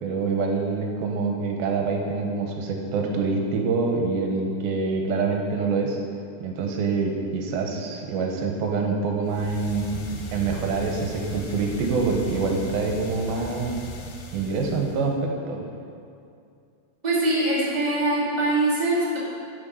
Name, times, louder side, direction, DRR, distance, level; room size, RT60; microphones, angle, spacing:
voice 1, 0.0-6.0 6.4-10.0 10.3-13.7 14.3-15.7, right 4 dB, 75° right, 2 dB, 2.6 m, -26 dB
sound 1, 9.2-15.2, equal, 90° left, 3.1 m, -37 dB
voice 2, 17.0-19.2, right 2 dB, 25° right, -8 dB, 0.9 m, -23 dB
8.7 x 6.5 x 5.5 m, 2.4 s
omnidirectional pair, 4.7 m